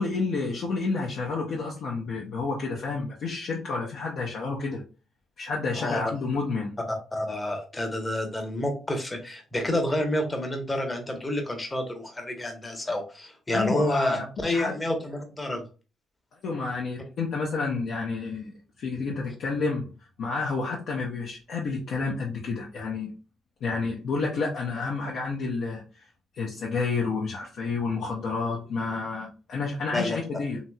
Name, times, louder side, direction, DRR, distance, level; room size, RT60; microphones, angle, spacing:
voice 1, 0.0-4.8 5.4-6.7 13.5-14.7 16.4-19.9 20.2-23.1 23.6-25.8 26.3-30.6, left 4 dB, 70° left, -3 dB, 0.7 m, -30 dB
voice 2, 7.1-15.6 29.9-30.2, left 1 dB, 20° left, 4 dB, 0.8 m, -29 dB
2.9 x 2.8 x 2.2 m, 0.34 s
cardioid pair, 90°, 0 cm